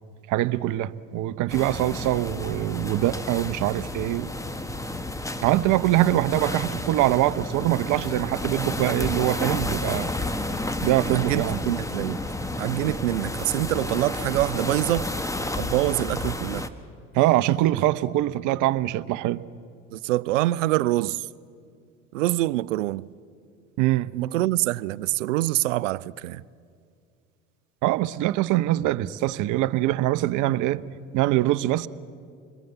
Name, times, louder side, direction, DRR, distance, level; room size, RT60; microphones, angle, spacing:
voice 1, 0.3-4.3 5.4-10.1 10.8-11.6 17.1-19.4 23.8-24.1 27.8-30.9 31.1-31.9, right 15 dB, 55° right, 0.9 m, -23 dB
sound 1, 1.5-16.7, left 1 dB, 10° left, 1.3 m, -31 dB
voice 2, 11.1-12.2 12.6-15.1 15.6-16.7 19.9-21.3 22.1-23.1 24.1-26.4, right 17 dB, 80° right, 0.6 m, -25 dB
27.5 x 20.5 x 8.0 m
hypercardioid pair, 75°, 37 cm